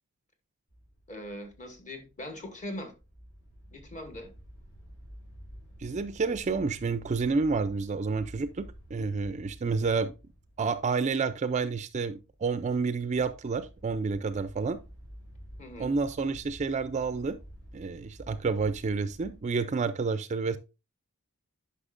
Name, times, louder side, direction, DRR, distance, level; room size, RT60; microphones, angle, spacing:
sound 1, 0.7-19.4, equal, 70° left, 4.6 m, -51 dB
voice 1, 1.1-2.9 3.7-4.3 15.6-15.9, left 1 dB, 35° left, 1.3 m, -41 dB
voice 2, 5.8-8.6 8.9-10.1 10.6-14.8 15.8-17.4 17.7-20.6, right 4 dB, 30° right, 0.3 m, -29 dB
9.9 x 5.6 x 2.5 m
head